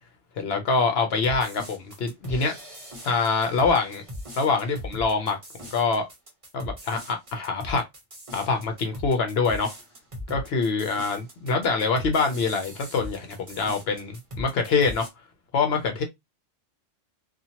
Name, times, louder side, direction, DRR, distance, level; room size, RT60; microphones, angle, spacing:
voice 1, 0.4-2.5 3.0-4.0 4.4-5.4 5.7-6.1 6.5-7.8 8.3-9.7 10.3-15.1 15.5-16.0, left 4 dB, 65° left, 0.7 m, -25 dB
sound 1, 1.2-15.1, left 1 dB, 30° right, 0.9 m, -40 dB
2.7 x 2.4 x 2.8 m
omnidirectional pair, 1.3 m